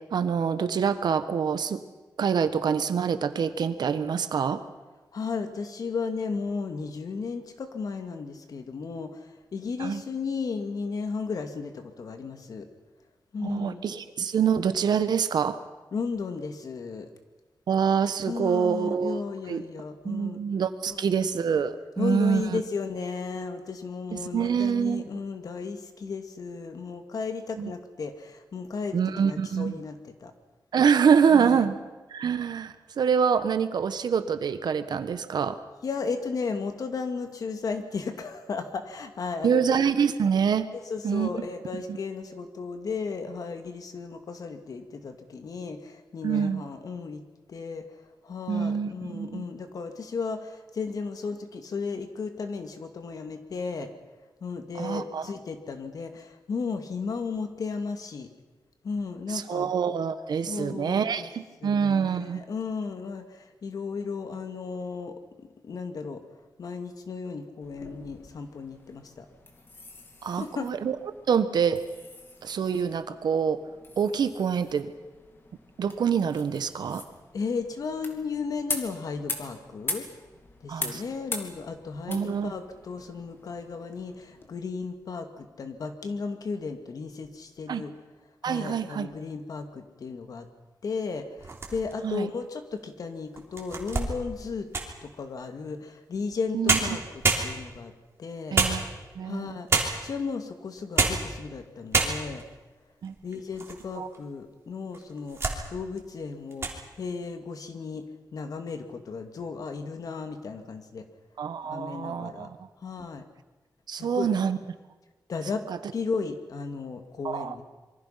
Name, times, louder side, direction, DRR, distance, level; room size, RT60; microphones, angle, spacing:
voice 1, 0.1-1.8 2.2-4.6 9.8-10.0 13.4-15.6 17.7-19.2 19.5-19.6 20.0-22.6 24.1-25.0 27.6-27.7 28.9-29.7 30.7-31.8 32.1-35.6 39.4-40.6 41.0-41.3 41.9-42.0 46.2-46.6 48.5-49.5 54.7-55.3 59.3-62.4 70.2-70.9 71.3-71.8 72.4-73.6 74.0-74.9 75.8-77.0 80.7-81.0 82.1-82.5 87.7-87.8 88.4-89.1 92.0-92.3 96.5-96.8 98.5-98.8 99.1-99.6 103.0-103.1 104.0-104.1 111.4-112.6 113.9-114.6 115.7-115.8 117.2-117.6, right 7 dB, 80° right, 11 dB, 1.4 m, -26 dB
voice 2, 5.1-12.7 13.3-13.9 15.9-17.1 18.3-20.4 20.9-21.2 22.0-30.3 31.3-31.7 35.8-39.7 40.9-47.2 47.5-53.9 54.4-58.3 58.8-59.7 60.5-61.3 61.6-66.2 66.6-69.3 70.3-70.7 77.3-80.1 80.6-87.9 88.4-90.5 90.8-94.7 95.0-97.9 98.2-98.6 99.2-102.4 103.2-108.1 108.3-111.1 111.6-112.5 112.8-113.2 113.9-114.3 115.3-115.7 115.9-117.6, left 5 dB, 60° left, 7 dB, 2.2 m, -34 dB
sound 1, 67.6-84.5, left 3 dB, 30° left, 2.6 m, -41 dB
sound 2, 91.4-92.1 92.7-92.8 93.4-95.0 96.3-96.4 96.7-97.9 98.5-99.2 99.7-100.2 100.8-101.3 101.6-101.7 101.9-102.5 103.0-103.8 104.1-104.2 104.9-105.6 106.0-106.2 106.5-106.8, right 4 dB, 35° right, 3.3 m, -27 dB
26.5 x 23.5 x 5.9 m, 1.2 s
wide cardioid pair, 180°, 7 cm